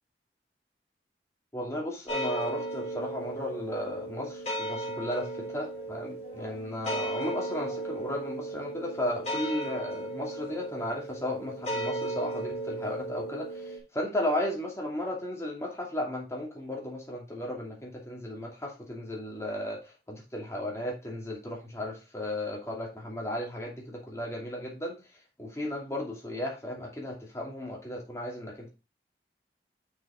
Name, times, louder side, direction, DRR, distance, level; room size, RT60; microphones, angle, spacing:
voice 1, 1.5-19.8 20.1-25.0 25.4-28.7, left 1 dB, 15° left, -1 dB, 2.5 m, -35 dB
sound 1, 2.1-13.8, right 2 dB, 35° left, 3.6 m, -36 dB
6.2 x 5.7 x 4.3 m, 0.29 s
head